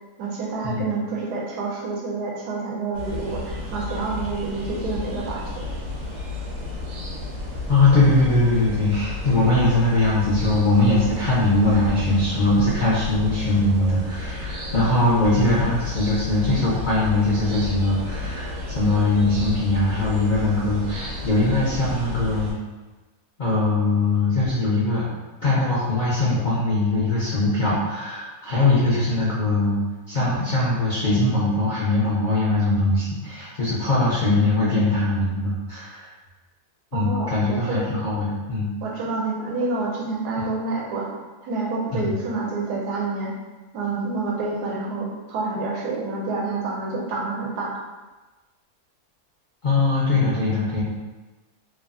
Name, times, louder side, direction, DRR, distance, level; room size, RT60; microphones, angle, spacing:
voice 1, 0.2-5.7 36.9-37.8 38.8-41.1 41.4-43.4 43.7-47.8, right 3 dB, 85° right, -2 dB, 1.2 m, -28 dB
sound 1, 2.9-22.5, left 2 dB, 65° right, 1.1 m, -32 dB
voice 2, 7.7-22.5 23.4-25.1 25.4-36.1 36.9-38.7 41.9-42.1 49.6-50.8, left 2 dB, 65° left, -9 dB, 0.4 m, -21 dB
3.0 x 2.3 x 2.4 m, 1.2 s
omnidirectional pair, 1.6 m